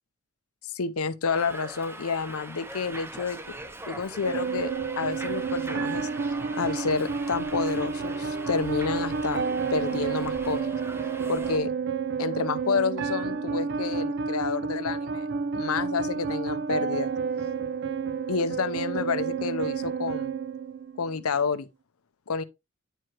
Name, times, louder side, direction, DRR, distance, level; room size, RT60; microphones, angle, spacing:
voice 1, 0.7-3.4 3.9-6.1 6.6-9.4 9.7-10.8 11.3-11.7 12.2-15.3 15.5-17.1 18.3-20.3 21.0-21.7 22.3-22.4, left 5 dB, 80° left, 0.6 m, -29 dB
Subway metro underground, 1.3-11.6, right 1 dB, 10° right, 0.6 m, -41 dB
sound 1, 4.2-21.2, right 5 dB, 55° right, 0.4 m, -30 dB
10.0 x 4.7 x 2.9 m
head